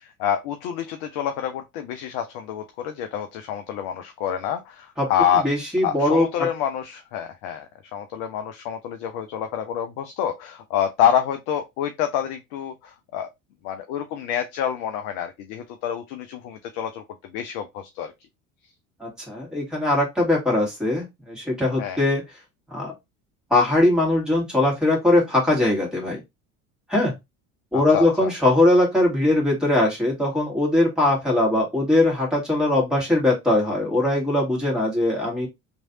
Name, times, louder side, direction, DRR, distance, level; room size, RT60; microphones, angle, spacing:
voice 1, 0.2-5.4 5.8-7.7 7.9-13.3 13.6-18.1 21.8-22.0 27.7-28.3, left 9 dB, 45° left, 0.5 m, -27 dB
voice 2, 5.4-6.3 19.0-22.2 22.7-22.9 23.5-26.2 26.9-27.1 27.7-35.5, left 1 dB, ahead, 1.7 m, -21 dB
3.1 x 2.6 x 2.8 m
figure-of-eight pair, 65°, 44 cm